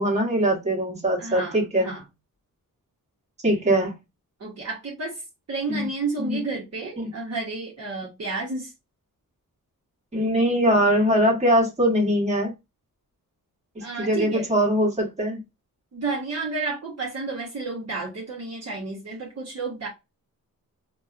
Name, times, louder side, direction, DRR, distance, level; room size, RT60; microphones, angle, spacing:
voice 1, 0.0-1.9 3.4-3.9 5.7-5.9 6.2-6.4 7.0-7.1 10.1-12.5 13.7-15.4, equal, 20° right, 1.2 m, -22 dB
voice 2, 1.2-2.0 4.4-5.2 5.5-8.7 13.8-14.5 15.9-19.9, right 3 dB, 45° right, 1.0 m, -31 dB
4.2 x 2.3 x 2.4 m
wide cardioid pair, 130°, 35 cm